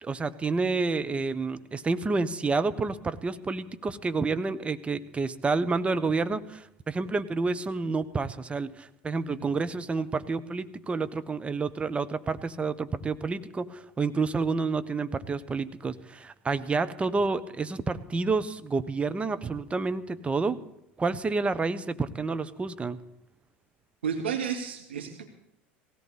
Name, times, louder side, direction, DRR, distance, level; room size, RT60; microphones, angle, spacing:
voice 1, 0.0-20.6 21.0-23.0, right 4 dB, 20° right, 11 dB, 1.2 m, -29 dB
voice 2, 24.0-25.3, right 7 dB, 80° right, 3 dB, 2.1 m, -32 dB
18.5 x 16.5 x 4.2 m, 0.79 s
hypercardioid pair, 80°, 6 cm